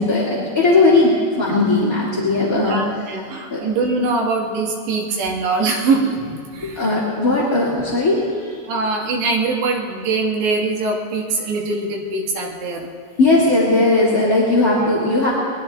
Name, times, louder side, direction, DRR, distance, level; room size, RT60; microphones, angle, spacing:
voice 1, 0.0-2.8 3.5-3.6 6.6-8.6 13.2-15.3, left 2 dB, 30° left, -6 dB, 1.6 m, -17 dB
voice 2, 2.5-6.8 8.7-12.9, right 3 dB, 80° right, -1 dB, 3.9 m, -22 dB
26.5 x 21.0 x 2.4 m, 2.1 s
omnidirectional pair, 5.0 m